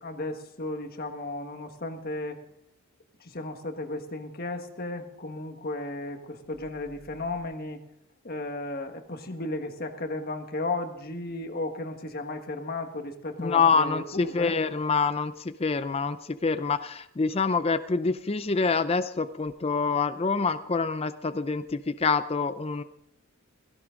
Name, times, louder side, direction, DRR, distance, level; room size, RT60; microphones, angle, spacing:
voice 1, 0.0-2.4 3.2-7.8 8.2-14.5, left 2 dB, 40° left, 5 dB, 1.5 m, -34 dB
voice 2, 13.4-15.3 15.6-22.8, left 4 dB, 25° left, 11 dB, 0.5 m, -26 dB
17.0 x 16.5 x 3.8 m, 0.76 s
head